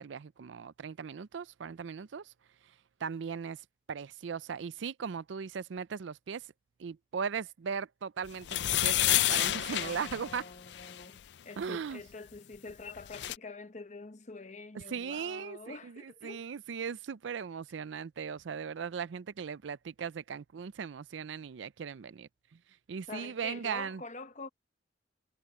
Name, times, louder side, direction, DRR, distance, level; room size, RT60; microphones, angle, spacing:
voice 1, 0.0-2.3 3.0-3.6 3.9-6.5 6.8-10.4 11.6-12.0 14.7-22.3 22.9-24.0, right 6 dB, 75° right, 0.4 m, -38 dB
sound 1, 8.4-11.0 12.7-12.8 13.0-13.4, left 14 dB, 65° left, 0.4 m, -29 dB
voice 2, 9.8-11.2 11.4-16.5 23.1-24.5, left 3 dB, 40° left, 1.0 m, -46 dB
head